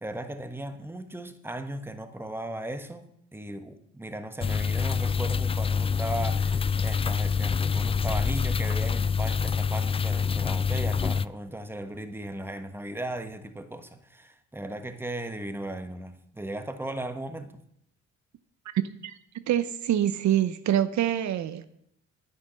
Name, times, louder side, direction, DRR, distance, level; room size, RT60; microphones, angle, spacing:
voice 1, 0.0-17.6, right 1 dB, 5° right, 1.3 m, -37 dB
sound 1, 4.4-11.3, left 6 dB, 20° left, 0.3 m, -26 dB
voice 2, 19.5-21.6, right 11 dB, 65° right, 0.8 m, -25 dB
10.0 x 9.6 x 6.3 m
cardioid pair, 90°, 30 cm